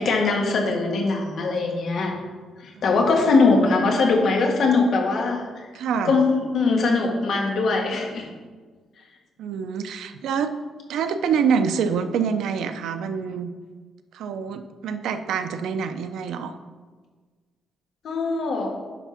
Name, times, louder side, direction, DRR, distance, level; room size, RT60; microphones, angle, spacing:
voice 1, 0.0-2.2 2.6-5.7 6.0-8.3 18.0-18.7, left 3 dB, 55° left, 1 dB, 1.5 m, -21 dB
voice 2, 5.7-6.1 9.4-10.5 10.9-13.5 14.1-16.5, right 6 dB, 85° right, 9 dB, 0.5 m, -26 dB
10.0 x 3.6 x 5.8 m, 1.4 s
cardioid pair, 150°, 0 cm